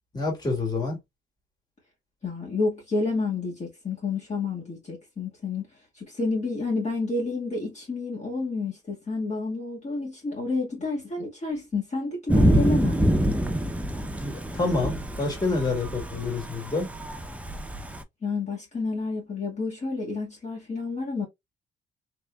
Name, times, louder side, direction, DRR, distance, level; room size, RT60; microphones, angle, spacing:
voice 1, 0.1-1.0 14.2-16.9, left 3 dB, 20° left, 2.2 m, -28 dB
voice 2, 2.2-5.7 5.9-13.0 18.2-21.3, left 3 dB, 35° left, 1.8 m, -30 dB
Thunder / Rain, 12.3-18.0, equal, 5° right, 0.7 m, -26 dB
3.7 x 3.1 x 2.3 m
cardioid pair, 90°, 20 cm